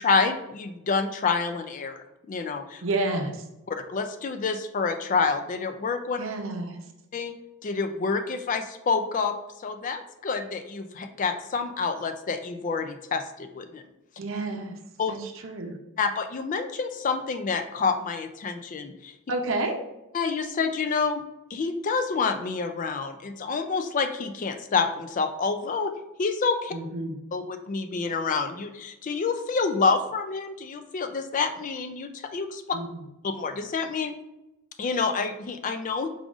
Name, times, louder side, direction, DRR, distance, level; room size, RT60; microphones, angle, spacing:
voice 1, 0.0-2.0 2.3-2.8 3.7-6.2 7.1-7.3 7.6-13.8 15.0-15.1 16.0-19.1 20.1-21.2 21.5-25.9 26.2-26.7 27.3-32.6 33.2-34.1 34.8-36.1, left 4 dB, 35° left, 7 dB, 0.3 m, -28 dB
voice 2, 2.8-3.4 6.2-6.8 14.2-14.8 15.1-15.8 19.3-19.7 26.7-27.2 32.7-33.1, right 2 dB, 60° right, 3 dB, 0.6 m, -30 dB
4.8 x 3.8 x 2.4 m, 0.95 s
head